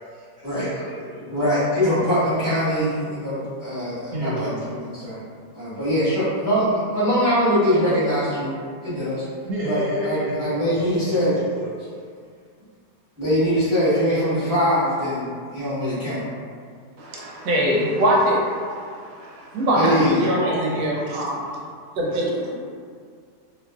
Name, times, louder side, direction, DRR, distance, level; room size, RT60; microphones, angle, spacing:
voice 1, 0.1-1.3 4.1-4.5 9.4-11.8 19.9-21.3 22.5-22.6, equal, 65° right, -8 dB, 1.4 m, -31 dB
voice 2, 1.3-5.2 5.5-8.5 8.8-9.2 9.6-11.3 13.2-16.2 19.7-20.2, equal, 15° right, -14 dB, 0.7 m, -22 dB
voice 3, 17.0-18.7 19.2-21.5 22.0-22.5, equal, 85° right, -3 dB, 1.3 m, -22 dB
2.8 x 2.4 x 2.3 m, 2.1 s
omnidirectional pair, 1.9 m